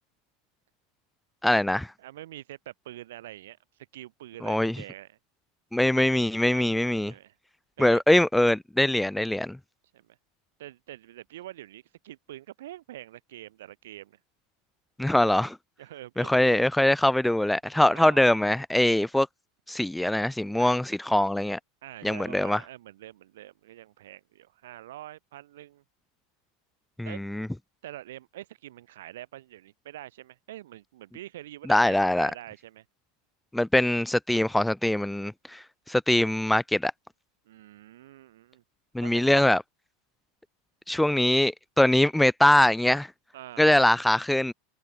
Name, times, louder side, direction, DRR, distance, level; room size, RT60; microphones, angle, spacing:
voice 1, 1.4-1.9 4.4-4.8 5.7-7.1 7.8-9.6 15.0-15.6 16.2-19.3 19.7-21.6 22.0-22.6 27.0-27.5 31.7-32.3 33.5-36.9 38.9-39.6 40.9-43.1 43.6-44.5, left 1 dB, 5° left, 0.3 m, -23 dB
voice 2, 2.0-5.2 6.5-7.3 7.8-8.2 9.9-10.2 10.6-14.2 15.8-16.7 17.9-18.3 20.6-20.7 21.8-25.8 27.0-27.2 27.8-32.8 37.4-38.6 39.0-39.5 43.3-43.8, right 14 dB, 80° right, 3.2 m, -45 dB
hypercardioid pair, 100°, 0 cm